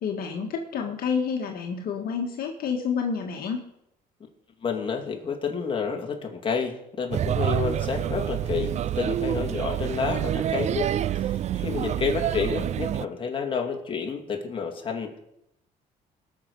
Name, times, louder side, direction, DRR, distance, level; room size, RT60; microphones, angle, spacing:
voice 1, 0.0-3.6, left 6 dB, 60° left, 2 dB, 1.7 m, -29 dB
voice 2, 4.6-15.2, left 5 dB, 30° left, 2 dB, 2.5 m, -30 dB
Male speech man speaking / Child speech kid speaking / Chatter, 7.1-13.1, right 11 dB, 45° right, 0.4 m, -27 dB
19.0 x 6.7 x 5.5 m, 0.80 s
cardioid pair, 110°, 17 cm